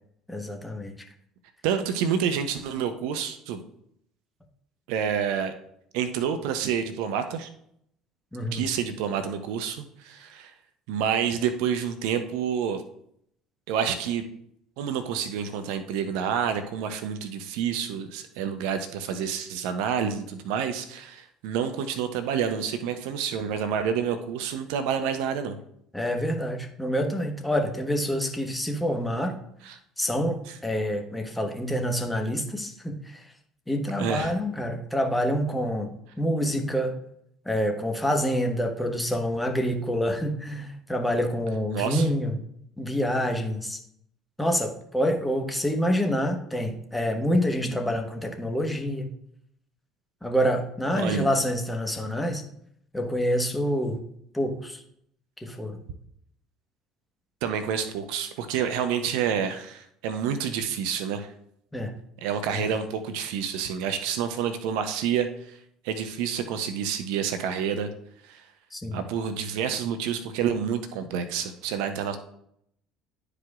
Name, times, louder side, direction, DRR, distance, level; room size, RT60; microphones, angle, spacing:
voice 1, 0.3-0.9 8.3-8.7 25.9-29.4 30.0-33.2 33.7-37.0 37.4-42.4 42.8-43.8 44.4-49.1 50.2-52.4 52.9-54.0 54.3-54.8 55.4-55.8 61.7-61.9 62.5-62.7 68.7-69.0, equal, 10° left, 5 dB, 1.2 m, -27 dB
voice 2, 1.6-3.6 4.9-5.5 5.9-7.5 8.5-10.5 10.9-12.8 13.7-14.3 14.8-25.6 29.6-29.8 30.5-30.6 34.0-34.3 41.7-42.1 50.9-51.3 57.4-61.3 62.2-65.6 65.8-67.9 68.3-68.5 68.9-72.2, right 7 dB, 65° right, 9 dB, 0.6 m, -28 dB
11.5 x 4.9 x 2.4 m, 0.71 s
hypercardioid pair, 60°, 0 cm